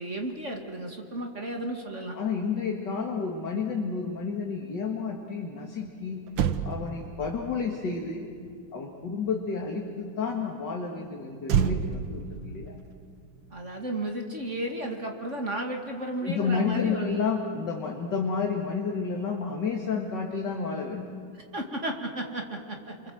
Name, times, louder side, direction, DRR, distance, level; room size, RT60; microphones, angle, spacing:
voice 1, 0.0-2.2 13.5-17.1 21.3-22.9, right 1 dB, 35° right, 2 dB, 2.5 m, -33 dB
voice 2, 2.2-6.3 6.6-8.3 8.7-12.8 16.2-21.1, left 5 dB, 55° left, 0 dB, 2.5 m, -30 dB
Motor vehicle (road), 5.9-6.0 6.3-9.8 11.4-14.0 14.3-14.6, right 7 dB, 70° right, 1.7 m, -32 dB
29.0 x 24.5 x 7.8 m, 2.2 s
omnidirectional pair, 2.3 m